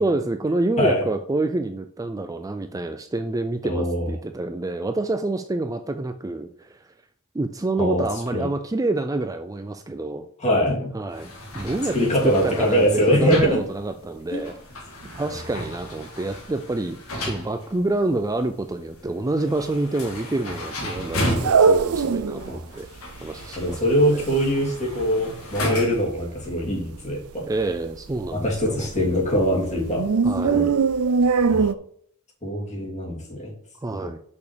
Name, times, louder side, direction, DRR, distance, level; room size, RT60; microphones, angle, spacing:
voice 1, 0.0-6.9 7.3-10.3 10.9-14.5 15.1-22.9 23.2-24.2 27.5-28.9 30.2-30.7 33.8-34.2, right 2 dB, 15° right, 8 dB, 0.4 m, -27 dB
voice 2, 3.6-4.1 7.8-8.0 8.3-8.5 10.4-10.9 11.9-13.6 14.3-14.4 22.5-22.6 23.6-27.4 28.3-30.0 30.4-30.7 31.5-31.7 32.4-33.5, equal, 30° left, -2 dB, 2.9 m, -22 dB
sound 1, 11.1-26.2, left 1 dB, 75° left, 2.2 m, -34 dB
sound 2, 21.0-22.5 22.9-23.0 23.1-25.4 25.7-25.9 26.2-26.8 27.1-27.2 27.6-27.7 28.1-29.4 29.7-31.7, right 5 dB, 75° right, 0.5 m, -21 dB
6.3 x 5.7 x 6.7 m, 0.63 s
head